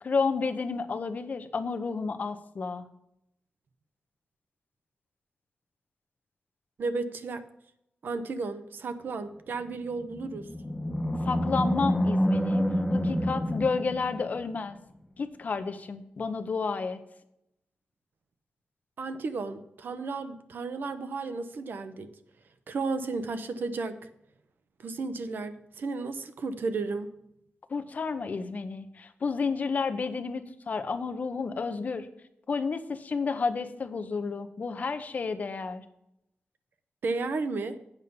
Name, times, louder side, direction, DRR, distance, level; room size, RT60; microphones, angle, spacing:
voice 1, 0.0-2.9 11.2-14.8 15.2-17.0 27.7-32.1 32.5-35.8, left 4 dB, 50° left, 10 dB, 0.7 m, -31 dB
voice 2, 6.8-7.4 8.0-10.5 19.0-22.1 22.7-24.0 24.8-27.1 37.0-37.8, right 3 dB, 65° right, 10 dB, 0.8 m, -33 dB
Animal, 10.0-14.6, equal, 10° left, 0.6 m, -27 dB
8.3 x 5.4 x 6.8 m, 0.79 s
wide cardioid pair, 145°, 4 cm